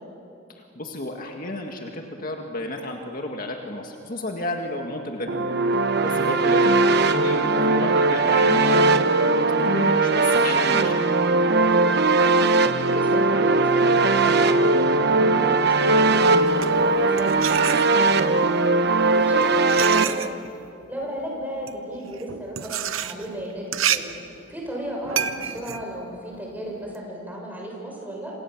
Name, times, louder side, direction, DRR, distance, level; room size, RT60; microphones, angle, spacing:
voice 1, 0.6-5.5 5.8-11.1, left 1 dB, 45° left, 2 dB, 2.0 m, -32 dB
sound 1, 5.3-20.0, right 3 dB, 55° right, 1.0 m, -19 dB
voice 2, 12.0-18.6 19.1-20.4 20.9-24.1 24.5-28.3, equal, 10° right, -1 dB, 6.6 m, -35 dB
sound 2, 16.4-18.3 19.1-27.0, right 9 dB, 90° right, 1.0 m, -30 dB
27.5 x 26.5 x 7.5 m, 2.6 s
head